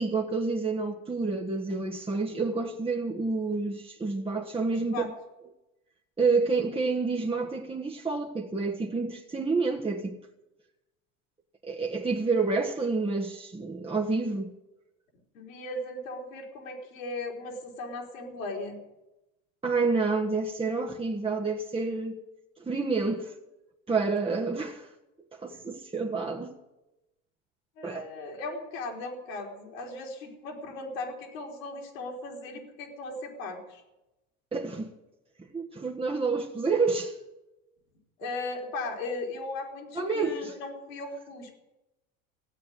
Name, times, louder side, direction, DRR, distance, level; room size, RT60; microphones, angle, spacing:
voice 1, 0.0-5.1 6.2-10.1 11.6-14.5 19.6-22.2 22.6-23.3 23.9-24.9 25.3-26.5 27.8-28.1 34.5-35.0 35.5-37.2 39.9-40.5, right 4 dB, 15° right, 1.4 m, -29 dB
voice 2, 4.7-5.1 15.3-18.8 25.5-25.6 27.8-33.8 38.2-41.5, left 2 dB, 80° left, 3.8 m, -37 dB
16.0 x 8.5 x 9.3 m
hypercardioid pair, 85°, 39 cm